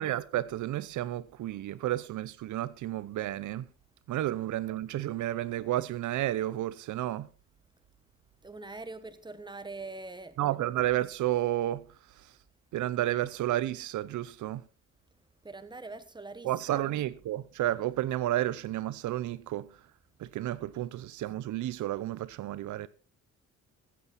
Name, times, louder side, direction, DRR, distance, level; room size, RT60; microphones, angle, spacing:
voice 1, 0.0-3.6 4.1-7.3 10.4-11.8 12.7-14.6 16.4-19.7 20.2-22.9, right 14 dB, 75° right, 0.8 m, -31 dB
voice 2, 8.4-10.6 15.4-16.9 20.8-20.9, right 3 dB, 15° right, 1.3 m, -43 dB
15.0 x 8.5 x 4.3 m
cardioid pair, 90°, 30 cm